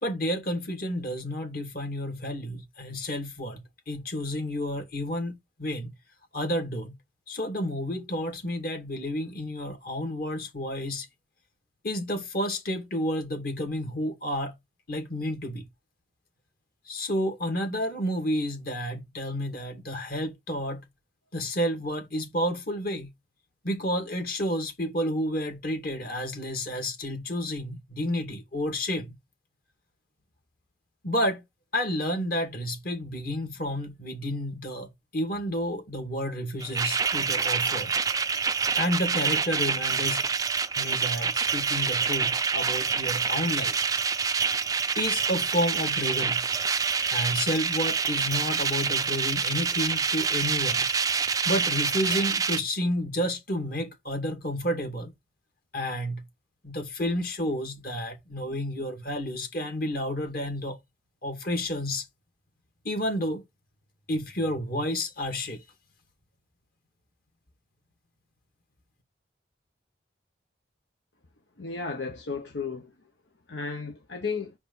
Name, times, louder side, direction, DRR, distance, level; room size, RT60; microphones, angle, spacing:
voice 1, 0.0-5.9 6.3-7.0 7.3-11.1 11.8-14.5 14.9-15.7 16.9-20.8 21.3-23.1 23.6-29.2 31.0-31.4 31.7-37.9 38.8-40.3 40.8-43.8 45.0-46.5 47.1-50.9 51.5-55.1 55.7-56.2 56.6-60.8 61.2-62.1 62.8-63.4 64.1-65.6, equal, 55° left, 2.1 m, -30 dB
sound 1, 36.6-52.6, right 5 dB, 20° right, 0.4 m, -27 dB
voice 2, 71.6-72.9 73.5-74.5, left 4 dB, 90° left, 1.0 m, -33 dB
5.8 x 4.8 x 3.9 m
head